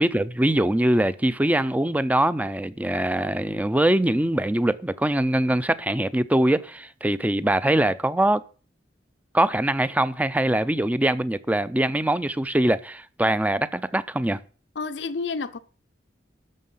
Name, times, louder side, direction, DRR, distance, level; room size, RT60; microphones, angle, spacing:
voice 1, 0.0-8.4 9.3-14.4, right 1 dB, 10° right, 0.5 m, -23 dB
voice 2, 14.8-15.6, left 4 dB, 85° left, 0.7 m, -30 dB
12.0 x 6.7 x 5.6 m
head